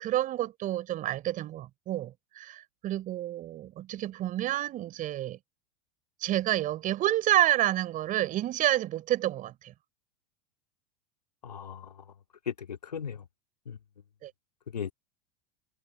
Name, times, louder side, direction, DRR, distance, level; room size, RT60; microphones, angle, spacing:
voice 1, 0.0-5.4 6.2-9.7 14.2-14.3, right 14 dB, 40° right, 4.2 m, -29 dB
voice 2, 11.4-12.1 12.4-13.3 13.7-13.8 14.7-14.9, left 7 dB, 85° left, 2.6 m, -37 dB
hypercardioid pair, 85°, 20 cm